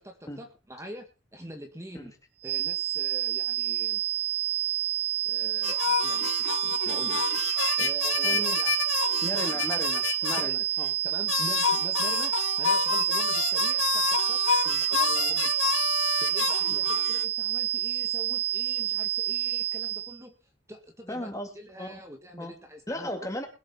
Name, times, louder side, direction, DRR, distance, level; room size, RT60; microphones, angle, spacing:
voice 1, 0.0-2.1 2.4-4.0 5.2-7.2 7.8-8.7 9.3-9.6 10.3-10.6 11.0-14.4 14.9-15.7 16.2-23.1, equal, 15° right, 4 dB, 1.8 m, -44 dB
sound 1, 2.4-20.2, right 13 dB, 60° right, 0.7 m, -28 dB
sound 2, 5.6-10.5 10.8-10.9 11.3-17.2, left 8 dB, 85° left, 0.7 m, -29 dB
voice 2, 8.2-8.6 9.2-10.9 14.7-14.9 16.7-16.9 21.1-21.5 21.8-22.0 22.4-22.5 22.9-23.5, left 1 dB, 15° left, 5 dB, 2.2 m, -36 dB
21.5 x 7.6 x 4.4 m, 0.31 s
head